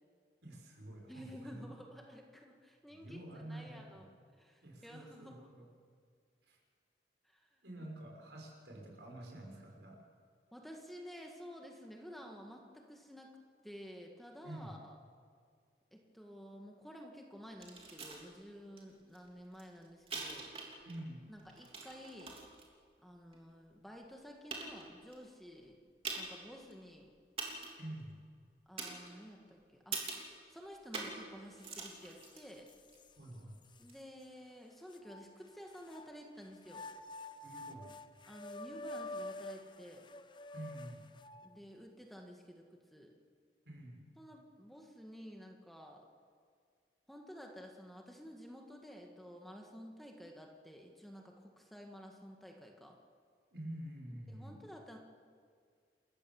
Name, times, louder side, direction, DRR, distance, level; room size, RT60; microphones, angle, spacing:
voice 1, 0.4-1.7 2.9-4.1 4.6-5.7 6.4-6.6 7.6-10.0 14.4-14.7 20.9-21.2 27.8-28.1 33.2-33.6 37.4-37.9 40.5-41.1 43.6-44.0 53.5-54.6, right 1 dB, 80° right, 0 dB, 5.8 m, -48 dB
voice 2, 1.1-4.0 4.4-5.5 7.2-7.5 10.5-13.3 13.6-15.0 15.9-20.5 21.3-22.4 23.0-25.8 26.2-27.1 28.7-30.0 30.5-32.7 33.8-36.8 38.3-40.1 41.4-43.1 44.2-46.1 47.1-53.0 54.3-55.0, equal, ahead, 1 dB, 1.7 m, -52 dB
sound 1, 17.6-18.2 18.8-18.9 19.1-21.0 21.4-22.6 23.3-23.4 24.0-24.1 24.5-25.1 26.0-26.4 26.7-26.8 27.4-27.9 28.8-29.4 29.9-30.3 30.9-31.3 31.5-33.0 33.8-33.9, right 4 dB, 35° right, 3.2 m, -43 dB
sound 2, 31.6-31.7 32.2-33.1 33.7-33.8 34.9-36.1 36.6-41.6, left 2 dB, 25° left, 0.7 m, -48 dB
28.0 x 14.5 x 7.2 m, 2.1 s
head